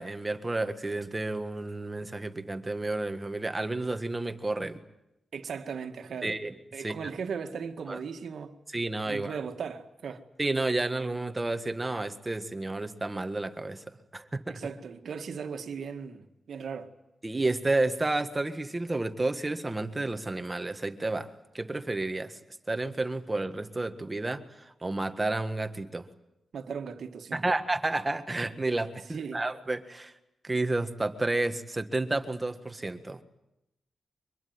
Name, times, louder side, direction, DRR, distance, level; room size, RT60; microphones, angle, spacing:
voice 1, 0.0-4.8 6.2-6.5 6.8-6.9 7.9-8.0 8.7-9.3 10.4-14.6 17.2-21.3 21.5-22.4 22.7-26.1 27.3-30.1 30.4-33.2, right 2 dB, 20° right, 1.7 m, -31 dB
voice 2, 5.3-6.3 6.7-8.6 9.1-10.3 14.5-16.9 26.5-27.5 29.1-29.4, right 6 dB, 75° right, 1.9 m, -37 dB
24.0 x 21.5 x 9.6 m
wide cardioid pair, 100°, 0 cm